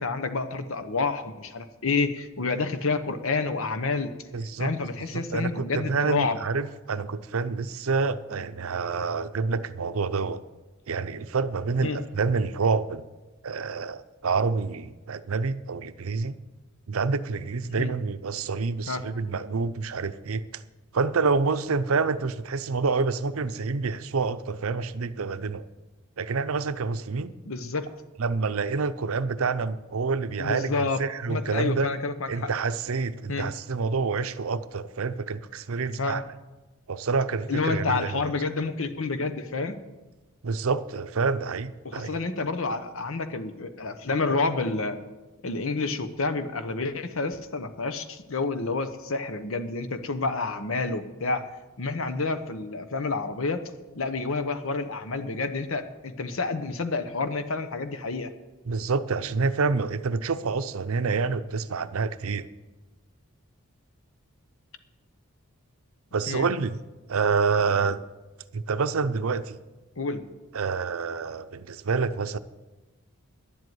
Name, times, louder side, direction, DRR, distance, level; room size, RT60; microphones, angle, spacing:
voice 1, 0.0-4.1 4.6-6.4 11.8-12.0 17.7-17.9 18.9-19.0 27.5-27.9 30.4-31.0 31.3-32.5 33.3-33.5 36.0-36.2 37.5-39.8 41.8-45.0 45.4-51.4 51.8-53.6 53.9-58.3 66.3-66.5 70.0-70.3, left 3 dB, 65° left, 10 dB, 0.9 m, -29 dB
voice 2, 4.3-4.7 5.1-10.4 10.9-13.0 13.4-16.4 16.9-20.6 20.9-25.7 26.2-27.3 28.2-30.7 31.0-31.9 32.3-36.2 36.9-38.2 40.4-42.2 58.7-62.5 66.1-66.8 67.1-68.0 68.5-69.6 70.5-72.4, right 4 dB, 70° right, 13 dB, 0.6 m, -27 dB
11.0 x 7.9 x 9.4 m, 1.1 s
head